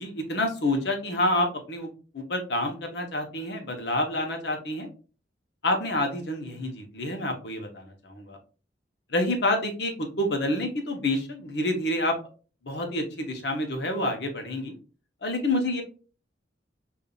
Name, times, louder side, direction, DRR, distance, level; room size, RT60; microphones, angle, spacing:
voice 1, 0.0-1.9 2.1-4.9 5.6-8.4 9.1-12.2 12.6-14.8 15.2-15.8, left 1 dB, 65° left, 3 dB, 1.0 m, -28 dB
5.3 x 2.7 x 2.4 m, 0.36 s
head